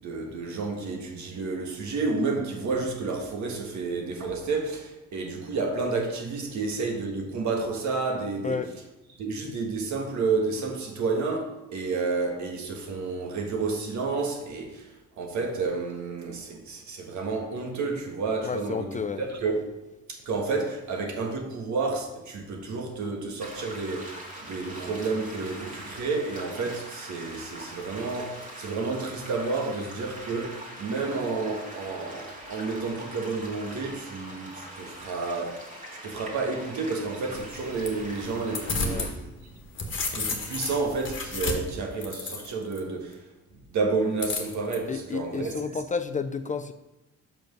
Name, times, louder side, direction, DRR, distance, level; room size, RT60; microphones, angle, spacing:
voice 1, 0.0-8.6 9.2-14.9 15.2-19.6 20.1-35.6 35.9-39.3 40.1-43.2 43.7-45.5, right 4 dB, 70° right, 2 dB, 1.5 m, -30 dB
voice 2, 18.4-19.2 38.7-39.1 44.9-46.7, left 5 dB, 25° left, 9 dB, 0.4 m, -31 dB
sound 1, 23.4-39.1, right 1 dB, 25° right, 1.9 m, -42 dB
sound 2, 37.4-39.1 39.5-42.8 44.2-44.8, left 3 dB, 40° left, 1.4 m, -32 dB
6.0 x 5.1 x 5.2 m, 1.1 s
cardioid pair, 90°, 30 cm